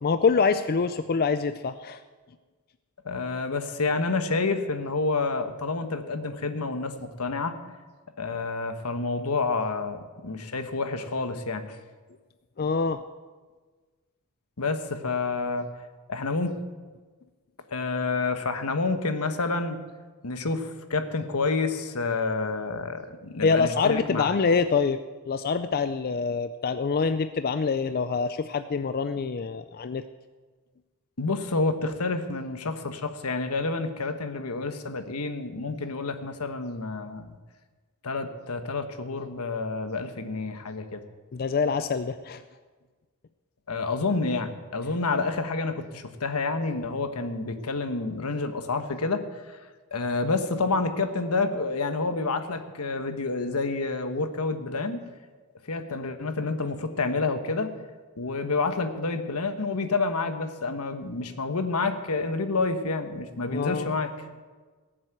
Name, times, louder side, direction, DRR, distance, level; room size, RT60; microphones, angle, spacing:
voice 1, 0.0-2.0 12.6-13.0 23.4-25.0 25.3-30.0 41.3-42.4 63.5-63.9, left 5 dB, 45° left, 11 dB, 0.4 m, -25 dB
voice 2, 3.0-7.5 8.2-11.8 14.6-15.7 16.1-16.6 17.7-19.8 20.2-24.3 31.2-37.3 38.0-41.0 43.7-49.6 49.9-55.0 55.7-57.7 58.2-64.3, left 3 dB, 85° left, 8 dB, 1.2 m, -29 dB
17.5 x 7.6 x 7.9 m, 1.4 s
head